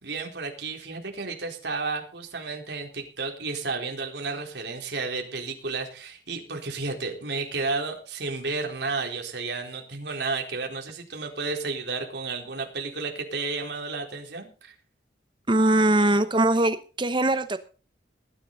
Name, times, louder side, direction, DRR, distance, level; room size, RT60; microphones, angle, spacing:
voice 1, 0.0-14.7, right 3 dB, 65° right, 2 dB, 3.9 m, -32 dB
voice 2, 15.5-17.6, right 2 dB, 25° right, 12 dB, 1.0 m, -21 dB
19.0 x 10.5 x 4.0 m, 0.36 s
head